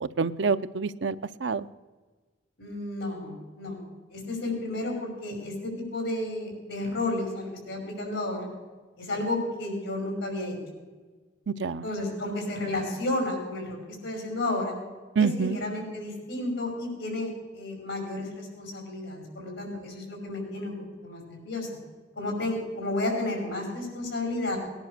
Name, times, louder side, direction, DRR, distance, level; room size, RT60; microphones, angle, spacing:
voice 1, 0.0-1.7 11.5-11.9 15.2-15.6, right 5 dB, 75° right, 13 dB, 0.6 m, -27 dB
voice 2, 2.6-3.8 4.1-8.5 9.0-10.6 11.8-14.8 15.2-20.8 21.0-21.7 22.2-24.6, left 2 dB, 80° left, 2 dB, 5.5 m, -32 dB
19.0 x 10.5 x 6.6 m, 1.4 s
head